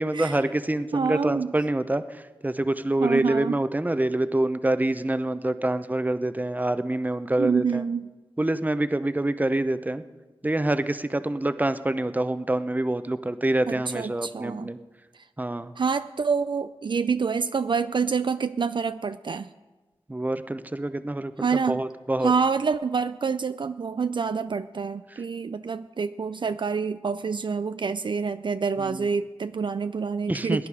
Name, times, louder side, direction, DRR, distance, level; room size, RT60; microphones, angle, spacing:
voice 1, 0.0-7.8 8.4-10.0 10.4-14.8 15.4-15.7 20.1-22.3 28.8-29.1 30.3-30.7, right 1 dB, 15° right, 12 dB, 0.8 m, -26 dB
voice 2, 0.9-1.5 3.0-3.5 7.4-8.1 13.7-14.7 15.8-19.5 21.4-21.8 22.2-30.7, right 5 dB, 55° right, 11 dB, 0.4 m, -27 dB
19.5 x 9.9 x 4.8 m, 1.2 s
cardioid pair, 45°, 10 cm